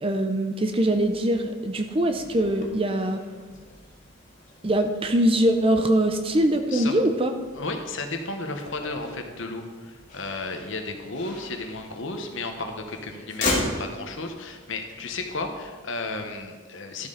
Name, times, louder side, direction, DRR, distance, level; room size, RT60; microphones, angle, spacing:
voice 1, 0.0-3.2 4.6-7.3, right 1 dB, 25° right, 7 dB, 0.6 m, -22 dB
Motor vehicle (road), 0.6-16.4, left 2 dB, 35° left, 1.9 m, -38 dB
voice 2, 7.5-17.1, left 3 dB, 65° left, 5 dB, 1.1 m, -33 dB
12.5 x 7.6 x 4.0 m, 1.4 s
head